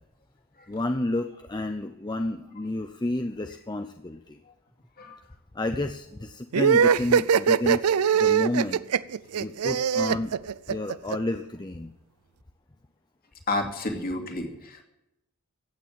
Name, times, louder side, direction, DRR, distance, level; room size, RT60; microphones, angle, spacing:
voice 1, 0.7-4.4 5.5-8.8 9.3-10.4 10.7-11.9, left 1 dB, 20° left, 7 dB, 0.6 m, -30 dB
sound 1, 6.5-11.2, right 7 dB, 85° right, 0.5 m, -21 dB
voice 2, 13.5-14.8, left 2 dB, 40° left, 2 dB, 2.6 m, -30 dB
15.5 x 8.9 x 7.7 m, 0.90 s
head